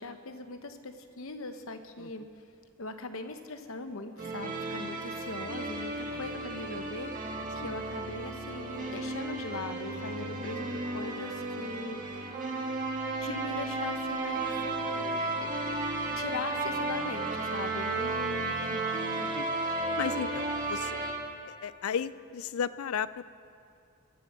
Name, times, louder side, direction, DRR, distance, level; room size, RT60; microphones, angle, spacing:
voice 1, 0.0-2.2 2.8-12.4 13.2-15.9 16.2-17.9, left 3 dB, 65° left, 8 dB, 1.0 m, -40 dB
sound 1, 4.2-21.1, right 2 dB, 40° right, 1.8 m, -34 dB
voice 2, 17.8-19.5 20.0-21.0 21.5-23.2, left 7 dB, 85° left, 16 dB, 0.4 m, -36 dB
20.0 x 7.4 x 7.4 m, 2.5 s
head